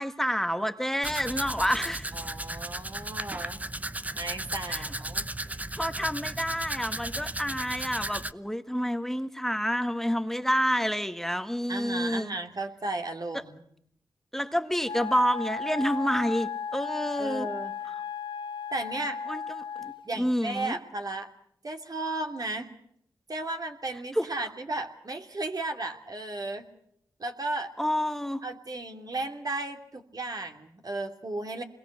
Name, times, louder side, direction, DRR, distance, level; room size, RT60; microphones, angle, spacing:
voice 1, 0.0-2.1 4.7-4.9 5.8-12.3 14.3-17.5 19.3-20.8 24.1-24.3 27.8-28.4, equal, 5° left, 9 dB, 1.7 m, -29 dB
Domestic sounds home sounds, 1.0-8.3, right 1 dB, 15° right, 1.0 m, -35 dB
voice 2, 2.1-3.7 4.1-5.3 11.7-13.6 17.2-17.7 18.7-19.2 20.0-21.3 21.6-22.7 23.3-26.7 27.2-27.7 28.4-31.6, right 2 dB, 45° right, 4 dB, 2.8 m, -34 dB
Wind instrument woodwind instrument, 14.8-20.1, left 6 dB, 65° left, 1.0 m, -35 dB
26.5 x 21.5 x 6.7 m, 0.72 s
cardioid pair, 40°, 9 cm